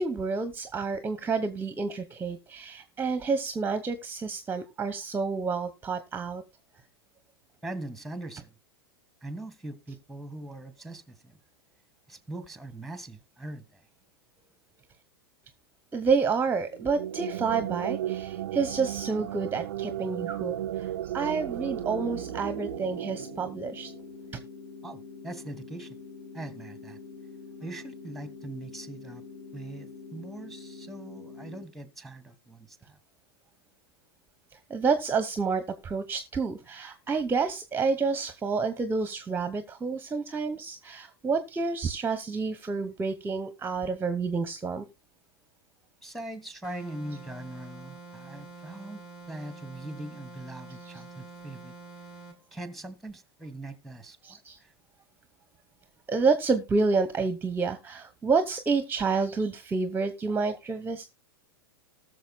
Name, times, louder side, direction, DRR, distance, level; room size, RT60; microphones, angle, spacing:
voice 1, 0.0-6.4 15.9-20.9 21.1-23.9 34.7-44.8 54.2-54.6 56.1-61.0, right 4 dB, 15° right, 0.9 m, -29 dB
voice 2, 7.6-8.5 9.2-11.4 12.1-13.8 24.8-26.0 26.3-27.0 27.6-29.2 29.5-33.0 46.0-49.0 49.3-51.7 52.5-54.7, right 1 dB, ahead, 1.5 m, -41 dB
sound 1, 16.7-24.2, right 12 dB, 70° right, 0.4 m, -35 dB
sound 2, 21.6-31.6, left 4 dB, 50° left, 2.4 m, -45 dB
sound 3, 46.6-52.4, right 4 dB, 30° left, 3.7 m, -47 dB
19.5 x 6.7 x 2.3 m
hypercardioid pair, 100°, 13 cm